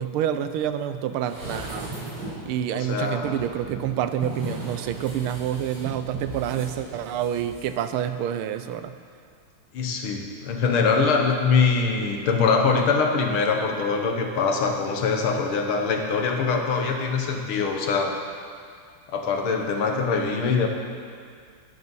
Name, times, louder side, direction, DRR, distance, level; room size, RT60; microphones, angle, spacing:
voice 1, 0.0-1.9 2.5-8.9, right 10 dB, 85° right, 10 dB, 1.5 m, -28 dB
sound 1, 1.2-2.5 3.2-7.7 8.0-8.1, right 2 dB, 60° right, 4.5 m, -36 dB
voice 2, 2.7-3.4 9.7-18.1 19.1-20.7, left 5 dB, 75° left, 3 dB, 2.0 m, -23 dB
10.5 x 10.5 x 5.5 m, 2.2 s
omnidirectional pair, 2.4 m